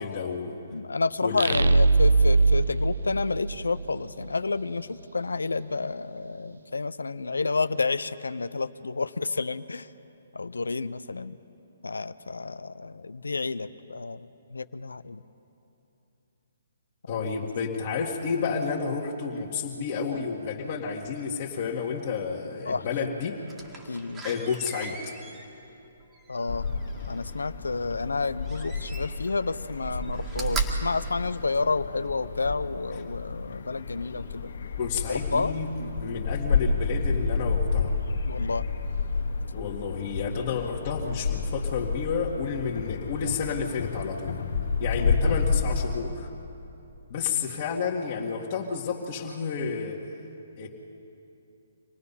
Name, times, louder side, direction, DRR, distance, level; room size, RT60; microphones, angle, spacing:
voice 1, 0.0-0.6 1.2-1.7 17.1-23.4 24.2-25.1 34.8-35.7 36.0-37.9 39.5-44.3 44.8-46.3 47.1-50.0 50.6-50.7, left 5 dB, 45° left, -3 dB, 1.8 m, -31 dB
voice 2, 0.7-9.9 10.3-11.4 11.8-15.2 17.2-17.3 22.7-23.1 23.8-24.2 26.3-26.7 27.0-34.5 35.3-35.5 38.3-38.7 45.0-45.1, left 3 dB, 90° left, 14 dB, 0.6 m, -30 dB
sound 1, 1.4-4.0, right 3 dB, 75° right, 0.6 m, -21 dB
Slam, 23.5-27.3 28.4-29.4 29.7-32.0 32.5-32.6, right 3 dB, 15° right, 2.0 m, -36 dB
sound 2, 26.5-46.0, left 4 dB, 70° left, 1.7 m, -30 dB
26.5 x 18.5 x 5.6 m, 2.9 s
hypercardioid pair, 140°, 0 cm